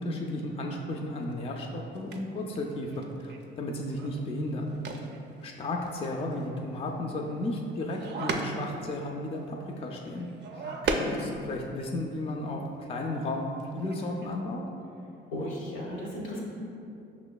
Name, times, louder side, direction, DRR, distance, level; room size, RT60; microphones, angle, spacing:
voice 1, 0.0-4.7 5.4-10.3 10.5-10.6 11.0-13.5 13.7-14.6, left 1 dB, 30° left, 1 dB, 0.3 m, -34 dB
sound 1, 1.2-1.3 1.9-11.8 12.3-12.4 12.6-13.3 13.6-14.4, right 3 dB, 60° right, 0.4 m, -38 dB
voice 2, 10.6-11.2 15.3-16.4, equal, 85° left, -3 dB, 1.0 m, -36 dB
5.4 x 2.9 x 2.2 m, 2.6 s
cardioid pair, 90°, 20 cm